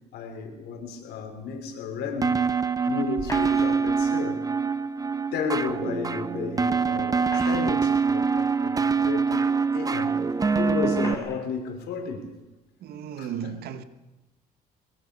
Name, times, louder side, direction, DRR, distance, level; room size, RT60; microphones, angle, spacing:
voice 1, 0.1-4.4 5.3-9.5 9.7-10.2 10.6-12.3 13.2-13.3, left 4 dB, 80° left, 5.2 m, -33 dB
sound 1, 2.2-11.1, right 5 dB, 20° right, 0.9 m, -25 dB
sound 2, 3.2-4.0 5.7-5.8 7.0-8.0 8.8-8.9 9.9-10.0 11.0-11.5, left 3 dB, 20° left, 6.5 m, -40 dB
voice 2, 12.8-13.8, right 8 dB, 70° right, 1.8 m, -35 dB
23.0 x 21.5 x 6.9 m
cardioid pair, 110°, 17 cm